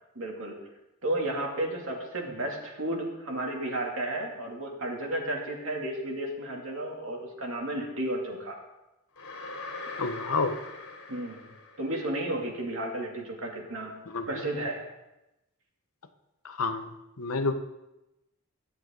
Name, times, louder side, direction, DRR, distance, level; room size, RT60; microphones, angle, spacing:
voice 1, 0.1-0.5 1.0-8.6 11.1-11.5 11.8-13.9 14.3-14.8, right 1 dB, 65° right, 0 dB, 2.7 m, -33 dB
sound 1, 9.2-12.3, left 3 dB, 65° left, 3.6 m, -42 dB
voice 2, 10.0-10.6 14.1-14.3 16.4-17.5, left 3 dB, 85° left, 8 dB, 1.0 m, -29 dB
23.0 x 7.7 x 3.9 m, 0.95 s
head